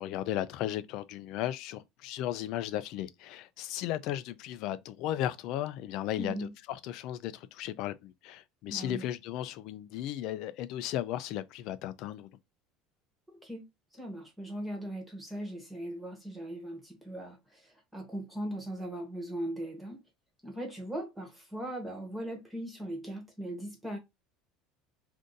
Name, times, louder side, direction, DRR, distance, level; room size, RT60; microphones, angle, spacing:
voice 1, 0.0-6.3 6.7-12.3, left 12 dB, 55° left, 0.4 m, -35 dB
voice 2, 6.2-6.5 8.7-9.1 13.3-13.7 13.9-20.0 20.4-24.0, right 1 dB, 5° right, 1.1 m, -39 dB
2.6 x 2.5 x 3.7 m
cardioid pair, 145°, 0 cm